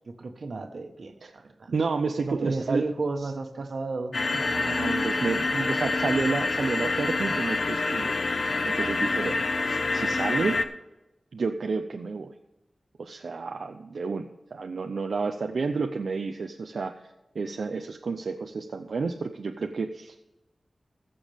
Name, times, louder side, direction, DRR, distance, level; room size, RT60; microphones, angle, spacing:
voice 1, 0.1-1.7 2.2-4.2, right 3 dB, 65° right, 6 dB, 1.4 m, -32 dB
voice 2, 1.7-2.8 3.2-3.3 4.3-8.1 8.6-9.4 9.7-10.6 11.3-12.3 13.0-16.9 17.3-20.2, right 4 dB, 85° right, 4 dB, 0.7 m, -30 dB
sound 1, 4.1-10.6, left 3 dB, 70° left, 0.9 m, -27 dB
20.5 x 6.9 x 3.6 m, 0.99 s
wide cardioid pair, 90°, 0 cm